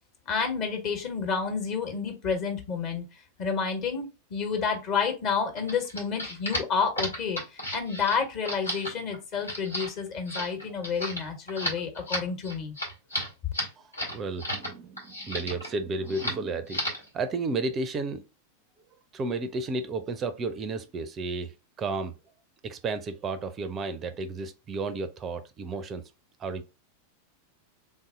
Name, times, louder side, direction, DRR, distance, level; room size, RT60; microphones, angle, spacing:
voice 1, 0.3-3.0 3.4-12.8, left 5 dB, 40° left, 1.2 m, -30 dB
sound 1, 5.5-14.7 15.0-15.7 16.1-16.4 16.7-17.1, equal, 85° left, 1.6 m, -33 dB
voice 2, 14.1-16.8 17.1-18.2 19.1-22.1 22.6-26.1 26.4-26.6, right 3 dB, 25° right, 0.4 m, -32 dB
3.7 x 2.7 x 3.6 m
figure-of-eight pair, 90°, 0 cm